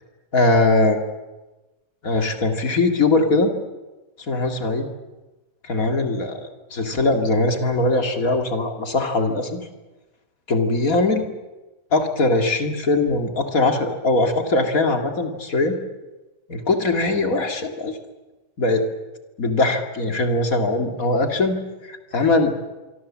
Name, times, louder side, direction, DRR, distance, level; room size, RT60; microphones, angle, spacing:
voice 1, 0.3-1.0 2.0-3.5 4.3-4.9 5.6-9.6 10.5-11.2 11.9-15.8 16.5-18.0 18.6-18.8 19.4-21.6 21.8-22.5, left 2 dB, 30° left, 5 dB, 2.0 m, -21 dB
25.5 x 24.0 x 7.4 m, 1.1 s
omnidirectional pair, 3.7 m